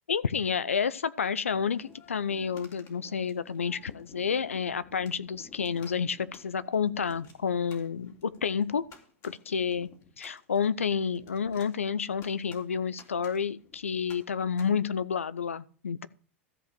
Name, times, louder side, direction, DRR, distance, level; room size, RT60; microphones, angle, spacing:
voice 1, 0.1-8.9 9.2-9.9 10.2-16.1, left 6 dB, 85° left, 17 dB, 0.6 m, -30 dB
sound 1, 1.4-14.7, left 6 dB, 45° left, 3.3 m, -54 dB
13.5 x 5.3 x 6.8 m, 0.43 s
hypercardioid pair, 90°, 7 cm